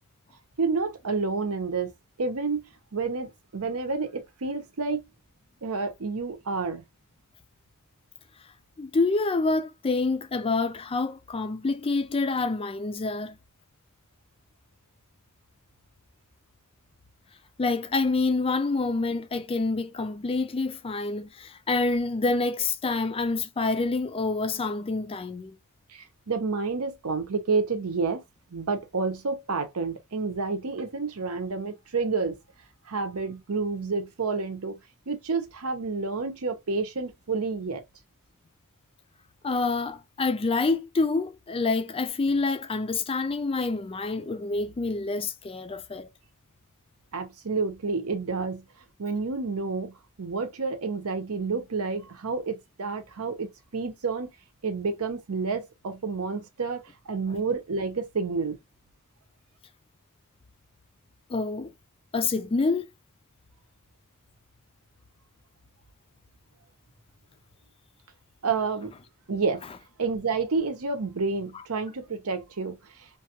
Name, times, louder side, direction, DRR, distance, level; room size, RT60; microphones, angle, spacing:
voice 1, 0.6-1.9 2.2-2.6 2.9-5.0 5.6-6.8 25.9-28.2 28.5-32.4 32.9-34.8 35.1-37.8 47.1-48.6 49.0-49.9 50.2-54.3 54.6-56.8 57.1-58.6 68.4-68.9 69.3-69.6 70.0-73.1, right 4 dB, 75° right, 0.8 m, -29 dB
voice 2, 8.8-13.4 17.6-25.6 39.4-46.1 61.3-61.7 62.1-62.9, left 3 dB, 25° left, 0.4 m, -27 dB
3.3 x 2.3 x 2.8 m
head